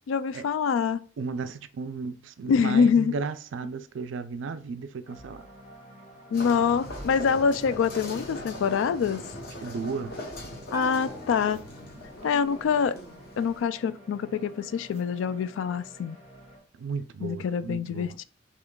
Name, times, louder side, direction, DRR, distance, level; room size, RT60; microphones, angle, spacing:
voice 1, 0.1-1.0 2.5-3.2 6.3-9.3 10.7-11.6 12.2-12.9 13.4-16.2 17.2-18.2, left 6 dB, 90° left, 0.3 m, -25 dB
voice 2, 1.2-5.5 9.6-10.2 16.8-18.2, right 4 dB, 80° right, 0.4 m, -34 dB
sound 1, 5.0-16.6, equal, 35° left, 1.1 m, -49 dB
sound 2, 6.3-13.6, left 1 dB, 55° left, 0.9 m, -41 dB
Bell, 10.7-12.3, left 1 dB, 20° right, 0.5 m, -44 dB
3.6 x 3.4 x 2.2 m
head